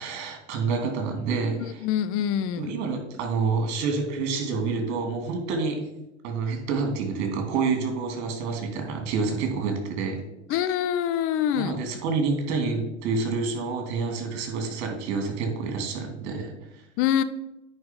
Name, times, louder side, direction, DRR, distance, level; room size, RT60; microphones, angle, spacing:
voice 1, 0.0-1.9 2.6-5.8 6.2-10.2 10.5-10.7 11.5-16.8, right 4 dB, 50° right, 3 dB, 2.9 m, -28 dB
voice 2, 1.6-2.7 10.5-11.7 17.0-17.2, left 10 dB, 40° left, 13 dB, 0.7 m, -25 dB
9.5 x 5.2 x 5.3 m, 0.96 s
hypercardioid pair, 90°, 36 cm